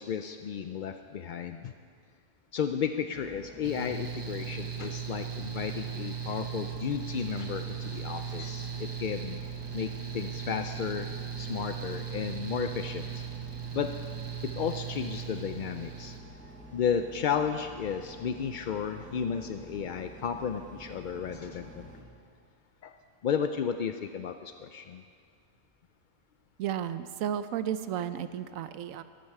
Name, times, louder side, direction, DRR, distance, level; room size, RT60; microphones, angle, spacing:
voice 1, 0.0-1.7 2.5-9.4 9.7-11.1 11.4-13.2 13.7-13.9 14.6-16.1 16.7-21.9 22.8-22.9 23.2-25.0, left 7 dB, 70° left, 7 dB, 0.4 m, -33 dB
Engine, 3.1-22.0, equal, 5° left, 1.6 m, -49 dB
Mechanical fan, 3.6-16.2, right 8 dB, 25° right, 0.7 m, -37 dB
voice 2, 26.6-29.0, right 10 dB, 85° right, 12 dB, 1.0 m, -33 dB
13.5 x 13.0 x 4.8 m, 2.2 s
omnidirectional pair, 1.3 m